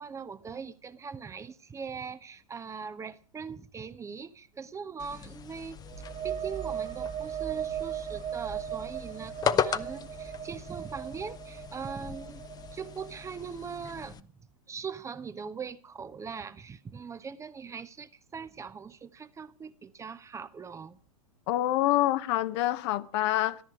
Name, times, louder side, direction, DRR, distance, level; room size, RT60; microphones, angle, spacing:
voice 1, 0.0-5.8 6.2-12.4 12.7-14.3 14.7-21.0, right 6 dB, 15° right, 0.7 m, -41 dB
sound 1, 5.0-14.2, left 8 dB, 20° left, 0.7 m, -37 dB
sound 2, 5.8-13.4, right 9 dB, 35° right, 2.1 m, -37 dB
voice 2, 21.5-23.6, left 15 dB, 50° left, 0.9 m, -26 dB
13.5 x 13.5 x 4.8 m
figure-of-eight pair, 100°, 18 cm